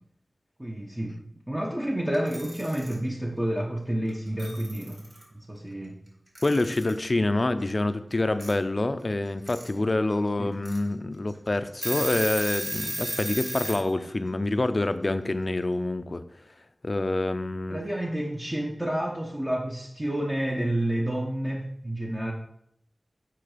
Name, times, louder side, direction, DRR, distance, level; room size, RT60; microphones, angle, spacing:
voice 1, 0.6-1.2 1.5-5.0 5.3-6.0 10.4-10.6 17.7-22.3, right 1 dB, 20° right, -2 dB, 1.0 m, -29 dB
Alarm / Clock, 2.1-2.9 4.1-4.2 4.4-5.2 6.4-7.0 8.4-8.5 9.3-9.7 10.1-10.2 10.6-10.8 11.3-11.4 11.7-13.8, right 1 dB, 40° right, 2.9 m, -33 dB
voice 2, 6.4-16.2 16.8-17.8, left 2 dB, 50° left, 11 dB, 0.5 m, -26 dB
8.8 x 3.9 x 5.1 m, 0.74 s
cardioid pair, 45°, 0 cm